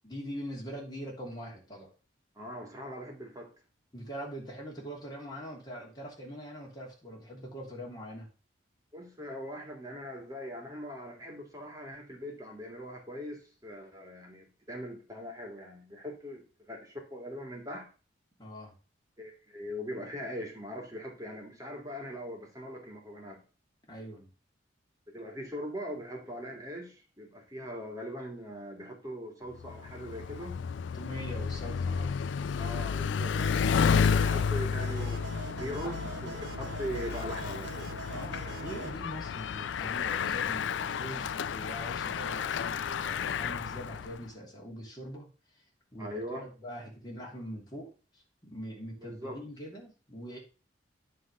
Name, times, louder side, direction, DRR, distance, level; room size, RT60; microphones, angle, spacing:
voice 1, 0.0-1.9 3.9-8.3 18.4-18.8 23.9-24.3 30.9-32.2 35.6-36.0 38.1-45.3 45.5-45.6 45.9-50.4, equal, 20° left, -3 dB, 2.8 m, -43 dB
voice 2, 2.4-3.5 8.9-17.9 19.2-23.4 25.1-30.6 32.6-33.4 33.8-37.9 46.0-46.5 49.0-49.4, equal, 20° right, 1 dB, 2.2 m, -41 dB
Bicycle, 29.6-44.2, left 6 dB, 75° left, 0.4 m, -31 dB
sound 1, 33.3-39.0, right 4 dB, 75° right, 0.7 m, -43 dB
9.8 x 3.7 x 6.1 m, 0.35 s
head